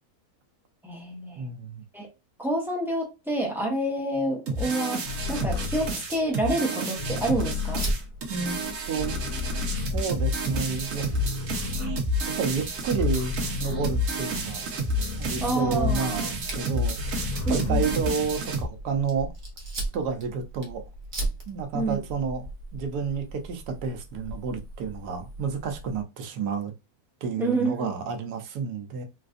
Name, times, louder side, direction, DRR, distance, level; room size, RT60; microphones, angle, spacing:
voice 1, 0.8-1.4 1.9-2.1 2.4-5.0 5.3-7.8 15.4-16.3 17.5-17.9 21.7-22.0 27.4-27.9, right 1 dB, ahead, 0.8 m, -28 dB
voice 2, 1.4-1.8 8.3-8.6 8.9-9.2 9.9-11.1 12.2-13.3 13.6-14.6 15.2-19.3 19.9-20.8 21.5-26.7 27.2-29.0, right 5 dB, 85° right, 1.3 m, -30 dB
sound 1, 4.5-18.6, equal, 60° right, 1.2 m, -30 dB
sound 2, 5.0-10.6 10.9-16.4 16.7-18.5, left 4 dB, 75° left, 1.9 m, -34 dB
Fire, 7.7-26.0, right 1 dB, 40° right, 0.9 m, -39 dB
3.9 x 2.5 x 2.4 m
omnidirectional pair, 1.7 m